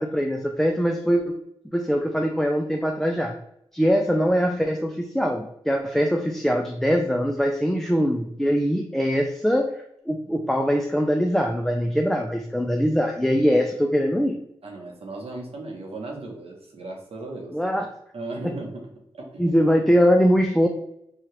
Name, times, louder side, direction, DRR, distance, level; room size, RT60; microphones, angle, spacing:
voice 1, 0.0-1.4 1.7-3.4 3.7-9.8 10.1-14.4 17.5-17.9 19.4-20.7, equal, 5° left, 3 dB, 0.3 m, -22 dB
voice 2, 14.6-17.6 18.1-19.6, right 2 dB, 70° right, -1 dB, 0.9 m, -37 dB
2.8 x 2.4 x 3.0 m, 0.77 s
cardioid pair, 65°, 11 cm